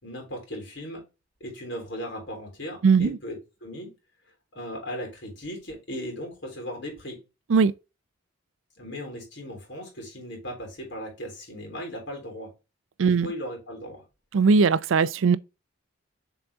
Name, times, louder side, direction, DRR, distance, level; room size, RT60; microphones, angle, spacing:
voice 1, 0.0-1.0 1.4-3.9 4.5-7.2 8.8-12.5 13.2-14.0, equal, 65° left, 3.4 m, -37 dB
voice 2, 2.8-3.2 7.5-7.7 13.0-13.3 14.3-15.4, right 5 dB, 90° right, 0.4 m, -19 dB
6.9 x 4.1 x 3.5 m
head